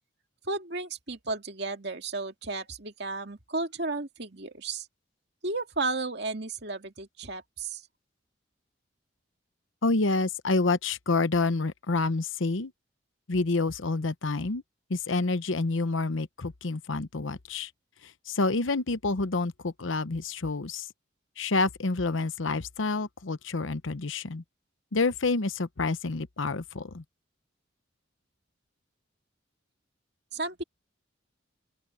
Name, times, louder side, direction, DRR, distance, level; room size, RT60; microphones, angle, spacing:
voice 1, 0.4-4.9 5.4-7.8 30.3-30.6, right 3 dB, 55° right, 2.4 m, -33 dB
voice 2, 9.8-12.7 13.3-14.6 14.9-17.7 18.0-20.9 21.4-24.4 24.9-27.0, left 3 dB, 80° left, 0.9 m, -28 dB
open air
head